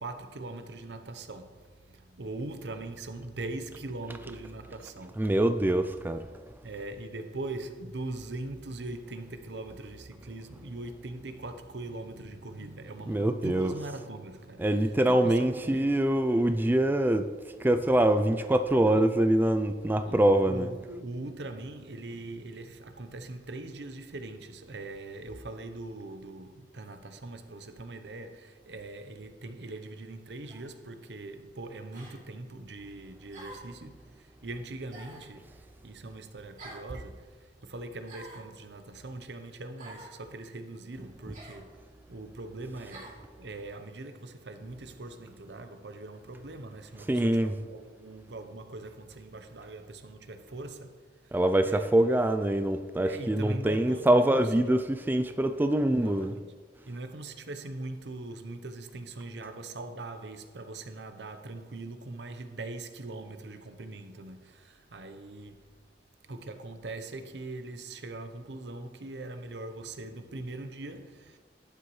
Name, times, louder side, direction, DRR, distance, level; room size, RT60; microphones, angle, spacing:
voice 1, 0.0-5.3 6.6-15.9 17.7-18.0 18.8-19.1 20.0-51.4 51.7-52.4 53.0-54.5 55.8-56.5 56.9-65.9 66.3-71.4, right 2 dB, 75° right, 0.8 m, -41 dB
voice 2, 5.2-6.3 13.1-13.7 14.6-17.3 17.6-20.7 47.1-47.5 51.3-56.3, right 1 dB, 10° right, 0.3 m, -24 dB
sound 1, 30.5-30.7 31.9-32.2 33.3-33.7 34.9-35.3 36.6-36.9 38.0-38.5 39.8-40.1 41.3-41.6 42.9-43.2, right 1 dB, 50° right, 2.8 m, -47 dB
11.5 x 9.0 x 3.2 m
head